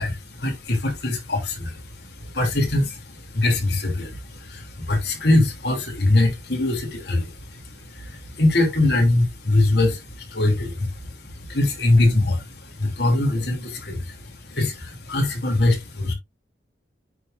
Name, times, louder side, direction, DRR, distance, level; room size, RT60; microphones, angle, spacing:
voice 1, 0.0-16.1, left 2 dB, 65° left, 2.8 m, -23 dB
9.1 x 4.3 x 2.5 m
head